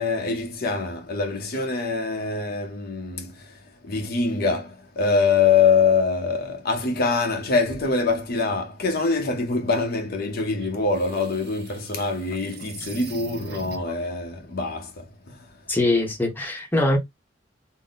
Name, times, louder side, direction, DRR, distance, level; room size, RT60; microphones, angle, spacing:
voice 1, 0.0-3.5 3.8-15.4, left 4 dB, 55° left, 0.7 m, -24 dB
sound 1, 10.6-14.1, right 4 dB, 60° right, 0.7 m, -41 dB
voice 2, 15.7-17.0, left 2 dB, 10° left, 0.9 m, -22 dB
3.8 x 2.1 x 4.0 m
head